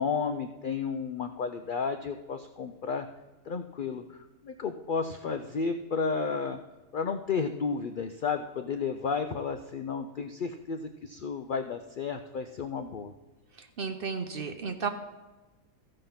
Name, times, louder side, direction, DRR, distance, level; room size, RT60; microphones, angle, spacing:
voice 1, 0.0-3.1 3.5-4.2 4.4-6.6 6.9-13.1, left 5 dB, 85° left, 8 dB, 0.4 m, -32 dB
voice 2, 13.5-14.9, right 5 dB, 50° right, 7 dB, 0.8 m, -33 dB
14.5 x 5.4 x 5.6 m, 1.2 s
omnidirectional pair, 1.5 m